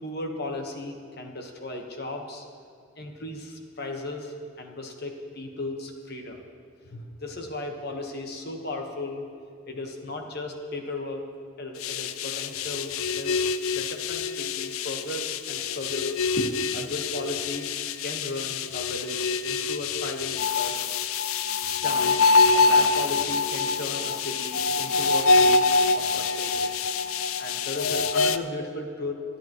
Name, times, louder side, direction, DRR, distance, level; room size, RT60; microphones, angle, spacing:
voice 1, 0.0-2.4 3.0-6.4 6.8-9.2 9.7-11.2 11.6-17.7 18.0-20.8 21.8-26.7 27.4-29.2, left 2 dB, 50° left, 2 dB, 1.2 m, -36 dB
sound 1, 11.8-28.4, left 4 dB, 75° left, 0.4 m, -25 dB
24.0 x 10.0 x 3.1 m, 2.2 s
head